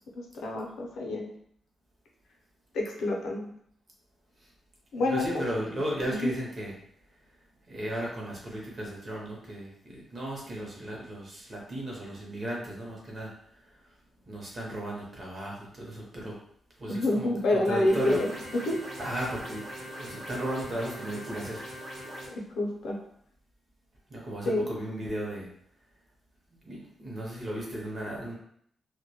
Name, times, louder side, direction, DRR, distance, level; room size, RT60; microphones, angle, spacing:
voice 1, 0.2-1.3 2.7-3.5 4.9-5.5 6.2-6.3 16.9-18.3 18.7-18.8 22.3-23.0 24.5-24.7, left 2 dB, 85° left, -1 dB, 0.5 m, -28 dB
voice 2, 5.0-6.7 7.1-13.9 14.3-16.4 16.8-18.2 19.0-21.6 24.1-25.5 26.5-28.3, right 1 dB, 30° right, -3 dB, 0.6 m, -35 dB
sound 1, 17.9-22.3, equal, 75° right, 0.8 m, -41 dB
2.1 x 2.1 x 2.8 m, 0.68 s
wide cardioid pair, 165°, 0 cm